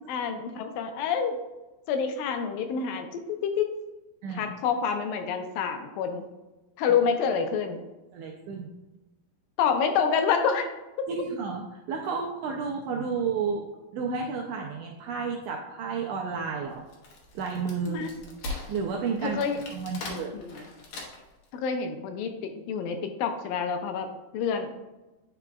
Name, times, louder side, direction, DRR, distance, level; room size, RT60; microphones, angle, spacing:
voice 1, 0.1-1.4 1.9-3.7 4.4-6.2 6.8-7.8 9.6-10.7 11.0-11.1 17.9-18.1 19.2-19.6 20.3-20.6 21.5-24.7, left 6 dB, 85° left, 6 dB, 2.4 m, -28 dB
voice 2, 4.2-4.5 8.1-8.7 11.1-13.6 13.9-16.8 17.3-18.1 18.7-19.4 19.7-20.3, right 5 dB, 85° right, 0 dB, 1.8 m, -31 dB
Wood, 16.7-21.4, left 2 dB, 65° left, 1.9 m, -40 dB
9.0 x 4.7 x 2.3 m, 1.1 s
omnidirectional pair, 4.1 m